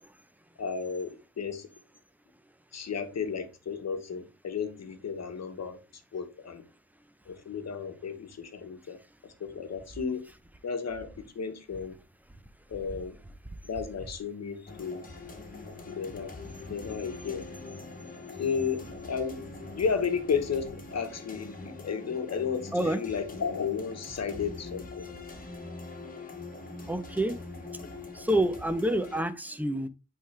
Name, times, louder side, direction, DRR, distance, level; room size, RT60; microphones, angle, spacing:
voice 1, 0.6-1.7 2.7-5.8 6.1-6.6 7.2-10.3 10.6-12.0 12.7-13.2 13.6-15.1 15.9-16.3 16.7-17.5 18.4-19.4 19.7-25.1, left 6 dB, 55° left, 1.2 m, -33 dB
sound 1, 14.7-29.2, left 3 dB, 25° left, 1.5 m, -43 dB
voice 2, 26.9-27.4 28.1-29.9, right 1 dB, 5° right, 0.7 m, -28 dB
8.4 x 3.7 x 3.3 m
wide cardioid pair, 115°, 31 cm